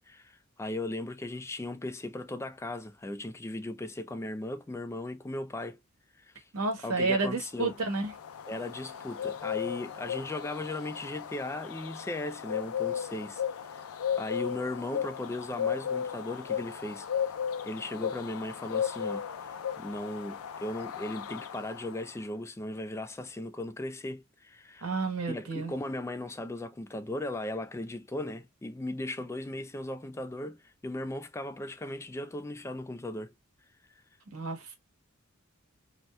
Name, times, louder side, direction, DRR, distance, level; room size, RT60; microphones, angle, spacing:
voice 1, 0.1-5.8 6.2-6.5 6.8-7.8 8.5-17.1 17.6-24.9 25.3-33.3, left 1 dB, 15° left, 0.3 m, -37 dB
voice 2, 6.5-8.1 24.8-25.7 34.3-34.7, right 3 dB, 90° right, 1.1 m, -30 dB
sound 1, 7.5-22.2, left 8 dB, 85° left, 0.4 m, -35 dB
2.8 x 2.2 x 3.0 m
head